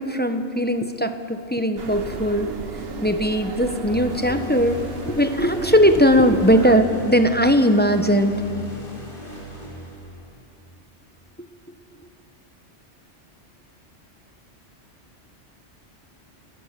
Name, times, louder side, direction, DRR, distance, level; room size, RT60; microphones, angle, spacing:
voice 1, 0.0-2.5 3.0-8.3 11.4-11.5, equal, 10° left, 7 dB, 0.8 m, -19 dB
sound 1, 1.8-6.8, right 4 dB, 55° right, 1.4 m, -34 dB
sound 2, 3.9-10.4, left 2 dB, 50° left, 4.4 m, -37 dB
30.0 x 14.5 x 6.7 m, 2.6 s
omnidirectional pair, 1.2 m